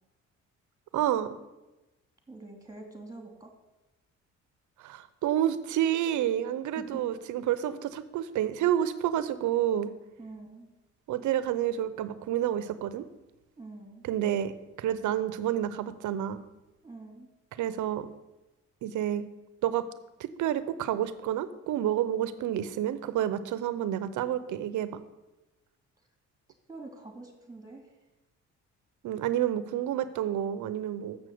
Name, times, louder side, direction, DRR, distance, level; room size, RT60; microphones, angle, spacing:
voice 1, 0.9-1.4 4.8-9.9 11.1-13.1 14.0-16.4 17.6-18.1 18.8-19.3 19.6-19.9 20.2-25.0 29.0-31.2, right 11 dB, 75° right, 13 dB, 0.8 m, -29 dB
voice 2, 2.3-3.5 6.8-7.0 10.2-10.7 13.6-14.0 16.8-17.3 26.7-27.9, right 2 dB, 10° right, 3 dB, 2.4 m, -45 dB
7.3 x 6.3 x 7.7 m, 1.0 s
cardioid pair, 90°, 30 cm